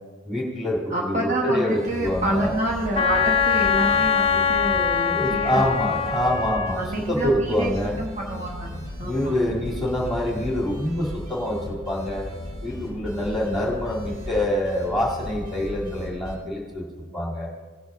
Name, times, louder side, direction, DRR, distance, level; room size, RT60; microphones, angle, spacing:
voice 1, 0.3-2.5 5.0-8.0 9.0-12.3 12.6-16.8 17.1-17.5, left 1 dB, ahead, -7 dB, 1.8 m, -26 dB
voice 2, 0.9-6.1 6.8-8.7 9.0-9.4, right 1 dB, 40° right, -3 dB, 1.1 m, -28 dB
sound 1, 1.8-16.3, left 1 dB, 80° right, 3.7 m, -36 dB
Wind instrument woodwind instrument, 3.0-6.8, left 6 dB, 30° left, 0.4 m, -22 dB
18.0 x 6.2 x 3.6 m, 1.5 s
head